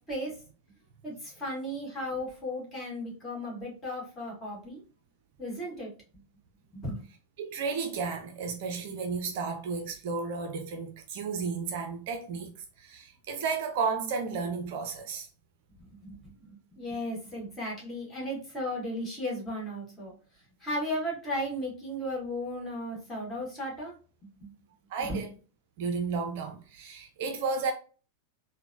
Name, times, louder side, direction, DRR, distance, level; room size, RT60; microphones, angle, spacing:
voice 1, 1.0-4.8 5.4-5.9 6.7-7.0 15.9-20.1 20.6-23.9 24.4-24.5 25.0-25.2, equal, 20° left, 1.6 m, -35 dB
voice 2, 7.4-15.3 24.9-25.3 25.8-27.7, right 5 dB, 50° right, 0.5 m, -33 dB
3.7 x 2.1 x 2.5 m
figure-of-eight pair, 90°, 0 cm